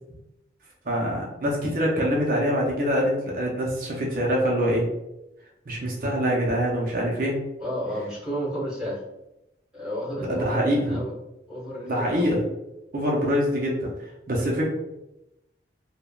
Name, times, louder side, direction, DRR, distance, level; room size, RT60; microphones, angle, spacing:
voice 1, 0.9-4.8 5.7-7.4 10.2-11.0 11.8-12.4 12.9-13.9 14.3-14.7, equal, 50° right, -3 dB, 0.5 m, -24 dB
voice 2, 7.6-9.0 9.7-11.2 11.5-12.3, equal, 5° right, -10 dB, 1.2 m, -32 dB
3.3 x 2.1 x 2.3 m, 0.92 s
head